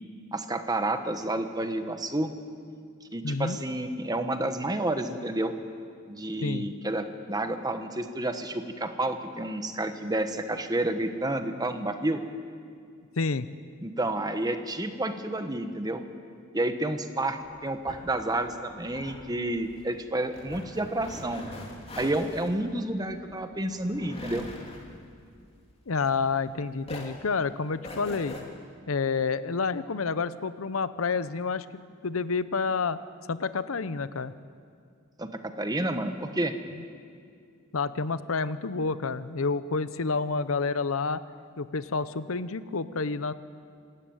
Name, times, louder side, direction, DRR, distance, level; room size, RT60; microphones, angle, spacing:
voice 1, 0.3-2.3 3.1-5.5 6.1-12.2 13.8-16.0 16.5-21.5 22.0-24.5 35.2-35.3 35.6-36.5, right 1 dB, 20° right, 7 dB, 1.3 m, -30 dB
voice 2, 3.2-3.6 6.4-6.7 13.2-13.5 25.9-28.4 28.9-33.0 33.3-34.3 36.8-36.9 37.7-41.2 41.6-43.3, left 4 dB, 85° left, 14 dB, 0.8 m, -29 dB
sound 1, 17.4-26.5 26.8-28.4, left 1 dB, 30° left, 3.0 m, -43 dB
26.5 x 13.5 x 8.9 m, 2.2 s
head